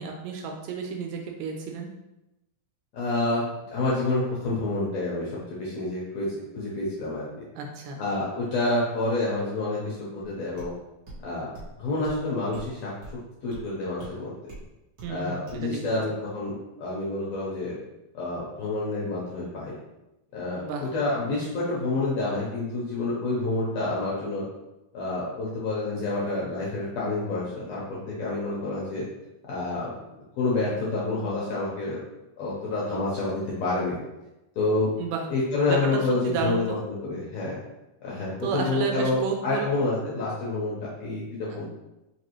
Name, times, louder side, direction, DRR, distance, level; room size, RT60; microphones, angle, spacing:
voice 1, 0.0-1.9 7.6-8.0 15.0-16.0 20.6-20.9 35.0-35.2 35.7-36.8 38.4-39.7, right 5 dB, 80° right, 2 dB, 2.1 m, -32 dB
voice 2, 2.9-5.3 5.6-7.3 8.0-10.7 11.2-11.5 11.8-12.9 13.4-14.3 15.1-17.8 18.1-19.7 20.3-20.6 20.9-24.4 24.9-27.8 28.1-29.0 29.5-32.0 32.4-34.0 34.6-34.9 35.3-37.6 38.0-40.7 41.0-41.6, left 2 dB, 70° left, -6 dB, 1.7 m, -28 dB
sound 1, 10.6-10.7 11.1-11.2 11.5-11.7 12.0-12.2 12.5-12.7 13.0-13.2 13.5-13.6 14.0-14.1 14.5-14.7 15.0-15.1 15.5-15.6, right 2 dB, 65° right, 1.0 m, -42 dB
5.1 x 2.8 x 3.0 m, 0.95 s
omnidirectional pair, 3.9 m